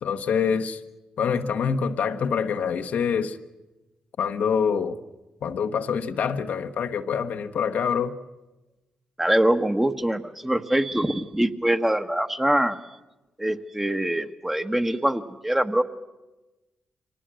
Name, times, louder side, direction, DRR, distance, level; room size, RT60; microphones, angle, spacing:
voice 1, 0.0-0.8 1.2-3.4 4.2-5.0 5.4-8.1, left 6 dB, 75° left, 1.1 m, -25 dB
voice 2, 9.2-12.8 13.4-15.8, right 1 dB, 10° right, 1.3 m, -24 dB
25.0 x 18.5 x 7.7 m
supercardioid pair, 50°, 3 cm